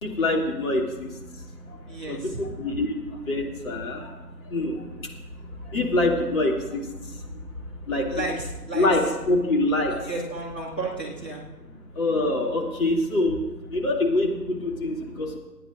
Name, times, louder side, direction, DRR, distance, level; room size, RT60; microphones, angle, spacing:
voice 1, 0.0-8.3 8.7-10.0 11.8-15.4, left 2 dB, 55° left, -1 dB, 2.8 m, -26 dB
voice 2, 1.9-2.4 8.1-8.9 9.9-11.4, right 2 dB, 5° left, -7 dB, 0.6 m, -33 dB
27.0 x 9.9 x 2.6 m, 1.1 s
figure-of-eight pair, 145°, 49 cm